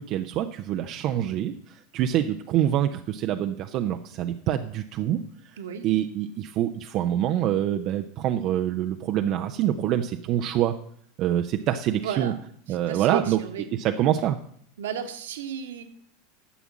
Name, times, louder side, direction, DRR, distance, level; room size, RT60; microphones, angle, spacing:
voice 1, 0.0-5.2 5.8-10.7 11.2-12.3 12.7-13.4 13.8-14.4, right 11 dB, 45° right, 6 dB, 0.7 m, -25 dB
voice 2, 12.0-12.4 12.7-13.7 14.8-15.8, right 8 dB, 70° right, 6 dB, 1.5 m, -33 dB
11.0 x 7.1 x 7.3 m, 0.64 s
figure-of-eight pair, 80°, 0 cm